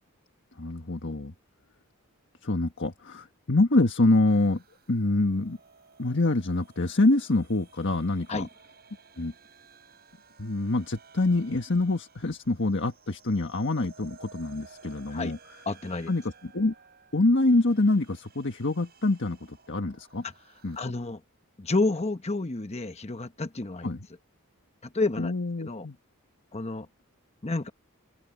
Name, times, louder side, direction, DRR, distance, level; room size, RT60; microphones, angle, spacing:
voice 1, 0.6-1.3 2.4-4.6 4.9-5.6 6.0-8.5 9.2-9.3 10.4-15.4 16.1-16.7 17.1-20.2 20.6-20.8 23.8-24.0 25.2-25.9, left 2 dB, 60° left, 1.5 m, -25 dB
sound 1, 4.3-20.8, right 5 dB, 45° right, 7.9 m, -56 dB
voice 2, 15.7-16.1 20.2-20.3 20.8-21.2 21.6-23.9 24.8-25.3 25.6-25.9 26.5-26.9 27.4-27.7, left 3 dB, 30° left, 1.0 m, -30 dB
open air
head